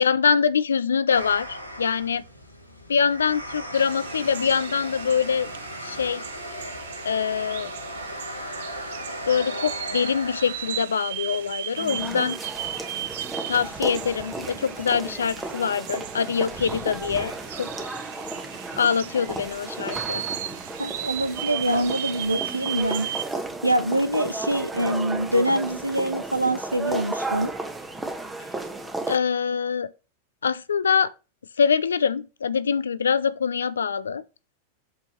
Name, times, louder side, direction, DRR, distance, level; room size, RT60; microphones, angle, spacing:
voice 1, 0.0-2.2 2.9-5.5 5.8-6.2 7.0-7.7 9.3-12.4 13.5-17.9 18.8-20.2 29.1-29.9 30.4-31.1 31.6-34.2, left 6 dB, 70° left, 0.5 m, -24 dB
sound 1, 1.1-10.8, equal, 85° left, 1.7 m, -37 dB
sound 2, 3.7-23.2, right 11 dB, 55° right, 0.6 m, -36 dB
sound 3, 11.8-29.2, right 2 dB, 10° right, 1.3 m, -34 dB
voice 2, 20.8-23.1 23.6-27.5, right 1 dB, 85° right, 0.8 m, -24 dB
7.5 x 4.4 x 4.4 m
figure-of-eight pair, 90°, 0 cm